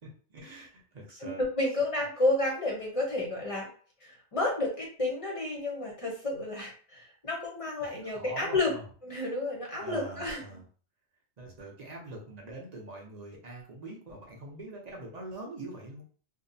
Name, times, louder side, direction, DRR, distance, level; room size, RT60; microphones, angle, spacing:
voice 1, 0.3-1.4 8.0-8.8 9.8-10.6 11.4-16.0, right 2 dB, 45° right, -1 dB, 0.7 m, -43 dB
voice 2, 1.2-3.7 4.0-8.8 9.0-10.6, left 2 dB, 40° left, -2 dB, 0.6 m, -31 dB
2.7 x 2.0 x 2.6 m, 0.42 s
omnidirectional pair, 1.1 m